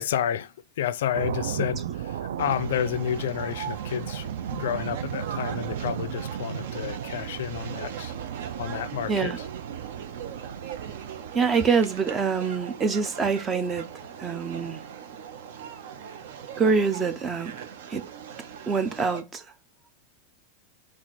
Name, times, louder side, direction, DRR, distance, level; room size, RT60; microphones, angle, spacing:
voice 1, 0.0-8.1 8.6-9.3, left 10 dB, 75° left, 0.4 m, -30 dB
sound 1, 1.1-11.5, right 9 dB, 85° right, 0.3 m, -35 dB
sound 2, 2.4-19.2, right 8 dB, 60° right, 0.8 m, -40 dB
voice 2, 9.1-9.4 11.3-13.8 14.2-14.8 16.6-17.6 17.9-18.0 18.7-19.4, right 5 dB, 15° right, 0.5 m, -25 dB
4.2 x 2.4 x 4.5 m
supercardioid pair, 175°, 0 cm